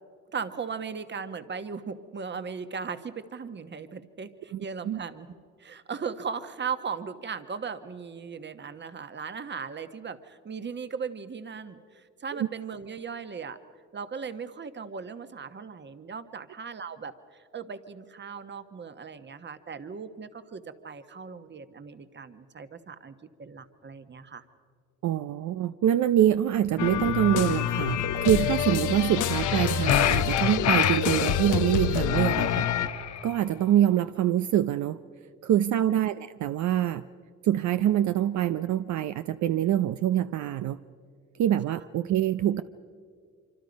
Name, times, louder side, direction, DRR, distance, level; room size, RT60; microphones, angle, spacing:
voice 1, 0.3-5.3 5.6-13.6 13.9-24.4 35.6-35.8, right 6 dB, 35° right, 11 dB, 1.2 m, -38 dB
voice 2, 4.5-5.0 12.3-12.5 25.0-32.7 33.2-35.0 35.4-37.0 37.4-40.8 41.4-42.6, right 11 dB, 70° right, 11 dB, 0.6 m, -25 dB
sound 1, 26.8-32.9, left 9 dB, 90° left, 0.9 m, -27 dB
sound 2, 29.3-31.4 32.1-33.3, left 10 dB, 60° left, 0.8 m, -27 dB
25.5 x 25.0 x 5.3 m, 2.1 s
cardioid pair, 90°, 30 cm